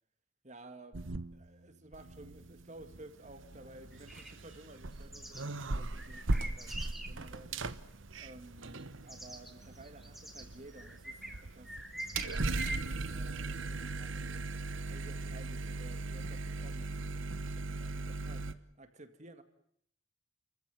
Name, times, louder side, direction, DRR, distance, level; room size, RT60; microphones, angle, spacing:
voice 1, 0.4-1.0 1.3-7.7 8.2-14.5 14.9-19.4, right 1 dB, 35° right, 2.1 m, -54 dB
sound 1, 0.9-1.7 1.9-18.5, right 3 dB, 85° right, 1.1 m, -39 dB
sound 2, 3.9-5.4 5.9-7.1 8.8-8.9 9.1-13.1, right 1 dB, ahead, 3.0 m, -44 dB
30.0 x 15.0 x 9.2 m
head